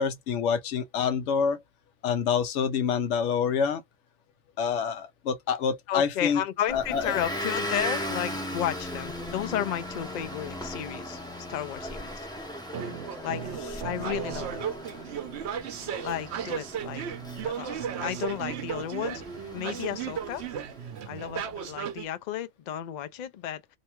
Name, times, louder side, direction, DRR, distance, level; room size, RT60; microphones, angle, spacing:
voice 1, 0.0-1.6 2.0-3.8 4.6-6.4 6.7-7.1, left 6 dB, 80° left, 0.9 m, -27 dB
voice 2, 5.9-11.2 11.5-12.3 13.2-13.4 13.8-14.7 15.9-17.0 17.4-19.2 19.5-20.4 21.1-23.6, left 11 dB, 60° left, 0.4 m, -33 dB
Motor vehicle (road) / Engine, 6.7-20.9, equal, 5° left, 0.5 m, -38 dB
sound 1, 12.7-22.1, right 8 dB, 70° right, 0.9 m, -35 dB
2.7 x 2.2 x 2.9 m
omnidirectional pair, 1.2 m